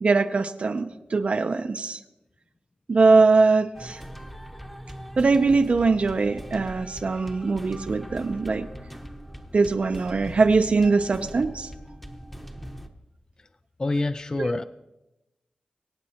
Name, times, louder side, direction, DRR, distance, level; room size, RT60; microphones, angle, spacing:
voice 1, 0.0-2.0 2.9-4.0 5.2-8.6 9.5-11.7 14.4-14.5, right 4 dB, 50° right, 7 dB, 0.6 m, -21 dB
sound 1, 3.7-12.9, equal, 5° left, 0.9 m, -41 dB
voice 2, 13.8-14.6, left 2 dB, 25° left, 12 dB, 0.3 m, -26 dB
24.5 x 8.9 x 2.9 m, 0.97 s
wide cardioid pair, 110°, 3 cm